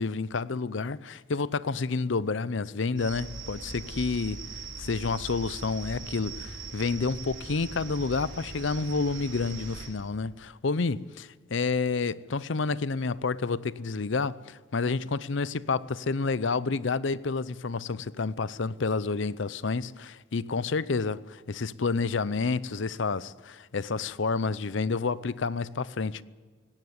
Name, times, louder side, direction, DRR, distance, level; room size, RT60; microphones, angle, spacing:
voice 1, 0.0-4.5 4.8-26.2, left 4 dB, 65° left, 0.6 m, -29 dB
sound 1, 3.0-9.9, right 3 dB, 70° right, 4.7 m, -41 dB
18.0 x 17.5 x 9.5 m
head